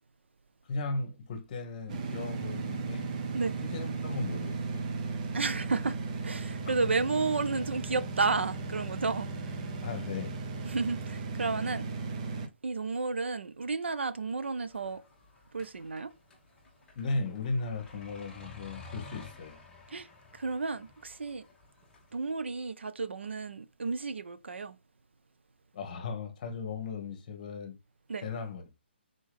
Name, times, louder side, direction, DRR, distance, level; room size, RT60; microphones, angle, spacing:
voice 1, 0.7-3.1 3.6-4.9 6.6-6.9 9.8-10.4 16.9-19.6 25.7-27.8 28.2-28.6, left 3 dB, 40° left, 1.1 m, -36 dB
sound 1, 1.9-12.5, right 4 dB, 35° right, 0.7 m, -36 dB
voice 2, 5.3-9.6 10.6-11.8 12.6-15.0 15.5-16.1 19.9-20.1 20.3-21.5 22.1-24.8 28.1-28.2, right 4 dB, 75° right, 0.5 m, -32 dB
sound 2, 14.7-22.1, left 4 dB, 10° left, 1.1 m, -51 dB
3.8 x 3.6 x 3.4 m
figure-of-eight pair, 140°, 6 cm